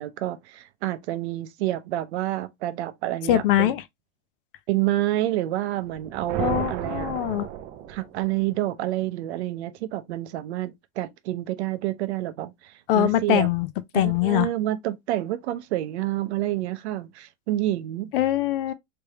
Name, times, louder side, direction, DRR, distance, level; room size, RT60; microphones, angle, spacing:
voice 1, 0.0-3.7 4.7-7.1 7.9-13.5 13.9-18.1, right 15 dB, 60° right, 0.7 m, -28 dB
voice 2, 3.3-3.8 6.4-7.5 12.9-13.7 13.9-14.5 18.1-18.7, left 13 dB, 50° left, 0.5 m, -22 dB
sound 1, 5.9-8.5, right 9 dB, 25° right, 0.4 m, -33 dB
3.4 x 3.3 x 2.9 m
supercardioid pair, 145°, 37 cm